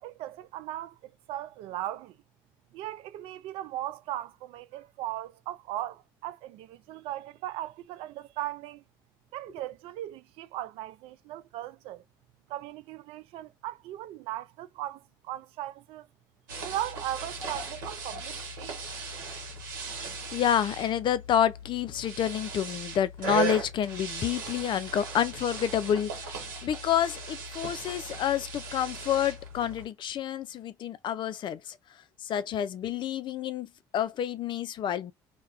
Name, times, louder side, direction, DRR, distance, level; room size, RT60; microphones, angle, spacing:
voice 1, 0.0-2.2 2.7-8.8 9.3-12.0 12.5-16.1 16.6-18.8, right 14 dB, 65° right, 0.4 m, -38 dB
sound 1, 16.5-29.9, right 5 dB, 80° right, 0.9 m, -38 dB
voice 2, 20.3-26.3 26.6-31.8 32.2-33.7 33.9-35.1, left 10 dB, 50° left, 0.4 m, -28 dB
2.3 x 2.1 x 3.1 m
hypercardioid pair, 65°, 11 cm